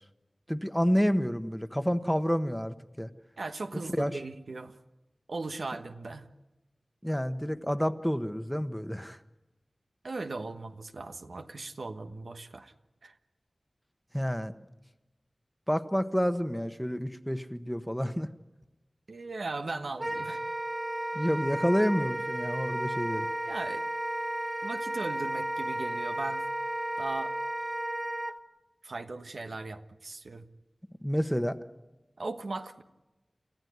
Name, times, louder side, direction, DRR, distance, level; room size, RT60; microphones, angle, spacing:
voice 1, 0.5-3.1 4.0-4.1 7.0-9.2 14.1-14.5 15.7-18.3 21.1-23.3 31.0-31.6, equal, 5° left, 9 dB, 1.2 m, -29 dB
voice 2, 3.4-4.8 5.3-6.3 10.0-12.7 13.0-13.2 19.1-20.4 21.0-21.1 23.5-23.8 24.6-26.4 27.0-27.3 28.8-30.5 32.2-32.8, right 3 dB, 85° right, 5 dB, 1.3 m, -38 dB
Wind instrument woodwind instrument, 20.0-28.3, right 1 dB, 25° right, 1.3 m, -33 dB
30.0 x 14.5 x 9.5 m, 1.1 s
wide cardioid pair, 40°, 0 cm